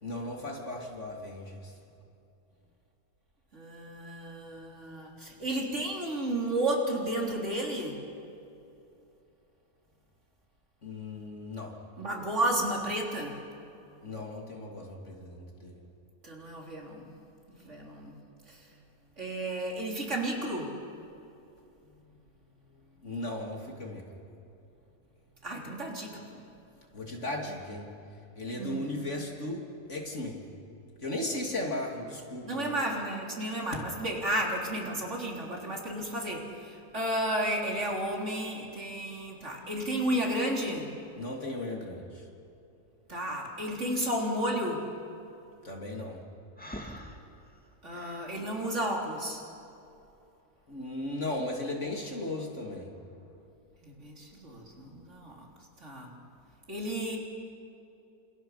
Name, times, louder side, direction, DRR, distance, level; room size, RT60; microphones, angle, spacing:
voice 1, 0.0-1.7 10.8-11.8 14.0-15.8 23.0-24.0 26.9-27.9 28.4-29.6 29.9-30.4 31.0-32.8 41.2-42.2 45.6-46.2 50.7-52.9, left 1 dB, 45° left, 0 dB, 3.3 m, -36 dB
voice 2, 3.5-8.0 12.0-13.4 16.2-17.1 17.5-18.2 19.2-20.7 25.4-26.2 28.6-28.9 32.4-40.9 43.1-44.8 47.8-49.4 53.8-55.4 55.8-56.1 56.7-57.2, right 1 dB, 45° right, -1 dB, 4.1 m, -32 dB
Breathing, 46.6-48.3, equal, 5° left, 2.2 m, -44 dB
29.5 x 27.5 x 5.8 m, 2.7 s
omnidirectional pair, 1.7 m